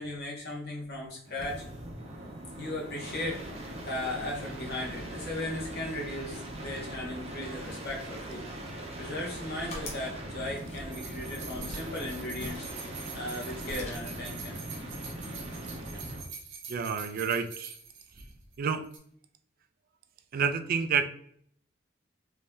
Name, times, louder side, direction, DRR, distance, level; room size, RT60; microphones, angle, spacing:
voice 1, 0.0-1.6 2.6-8.5 9.0-12.7 13.1-14.6, left 1 dB, 55° left, -2 dB, 1.1 m, -37 dB
sound 1, 1.3-16.3 18.1-18.5, right 1 dB, 30° right, 0.7 m, -41 dB
sound 2, 9.2-10.1 10.5-11.2 11.5-11.9 12.4-13.4 13.6-14.2, left 1 dB, 35° left, 0.9 m, -44 dB
sound 3, 10.9-18.6 18.8-19.0, right 6 dB, 65° right, 0.9 m, -45 dB
voice 2, 16.7-17.7 18.6-18.8 20.3-21.1, right 6 dB, 45° right, 10 dB, 0.3 m, -29 dB
3.1 x 2.7 x 3.4 m, 0.64 s
head